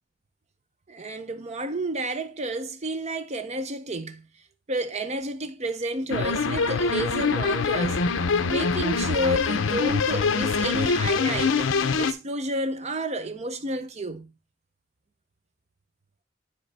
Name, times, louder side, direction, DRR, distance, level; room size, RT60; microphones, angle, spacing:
voice 1, 0.9-4.3 4.7-8.0 8.5-14.3, right 1 dB, 35° right, 0.6 m, -30 dB
sound 1, 6.1-12.1, left 4 dB, 75° left, 0.6 m, -24 dB
9.7 x 3.2 x 4.0 m
head